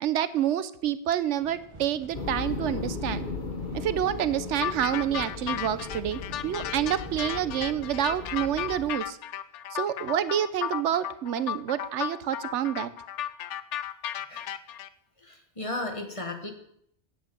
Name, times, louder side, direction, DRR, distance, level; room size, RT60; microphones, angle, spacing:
voice 1, 0.0-3.2 3.7-9.2 9.7-12.9, right 10 dB, 85° right, 14 dB, 1.0 m, -28 dB
sound 1, 1.4-7.6, right 3 dB, 25° right, 1.1 m, -49 dB
sound 2, 2.1-8.9, left 4 dB, 45° left, 1.3 m, -37 dB
sound 3, 4.6-14.9, left 11 dB, 90° left, 0.9 m, -34 dB
voice 2, 15.2-16.5, left 2 dB, 30° left, 4 dB, 1.6 m, -35 dB
9.4 x 8.0 x 7.7 m, 0.73 s
omnidirectional pair, 1.2 m